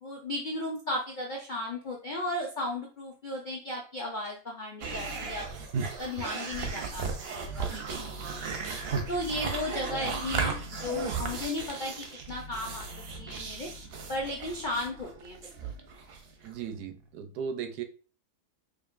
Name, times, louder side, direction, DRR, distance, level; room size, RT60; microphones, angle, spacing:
voice 1, 0.0-5.5 6.0-7.1 7.3-8.6 9.1-12.9 13.2-13.7 14.1-15.7, left 1 dB, 60° left, -2 dB, 0.5 m, -35 dB
sound 1, 4.8-16.5, right 5 dB, 60° right, 0.6 m, -35 dB
voice 2, 16.4-17.8, right 7 dB, 85° right, 7 dB, 1.2 m, -36 dB
5.1 x 2.5 x 2.5 m, 0.38 s
omnidirectional pair, 1.7 m